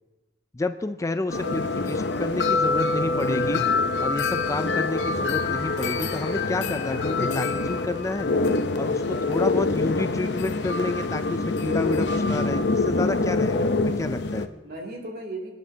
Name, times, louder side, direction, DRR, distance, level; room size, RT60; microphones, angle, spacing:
voice 1, 0.5-3.6 4.0-8.3 8.8-9.0 9.3-14.5, left 2 dB, 20° left, 10 dB, 0.4 m, -30 dB
sound 1, 1.3-14.5, left 3 dB, 75° left, 0.7 m, -25 dB
sound 2, 2.2-10.4, left 1 dB, 50° left, 2.5 m, -45 dB
voice 2, 9.1-9.9 14.6-15.5, right 1 dB, 60° right, 0 dB, 2.7 m, -37 dB
26.5 x 9.6 x 2.8 m, 1.1 s
head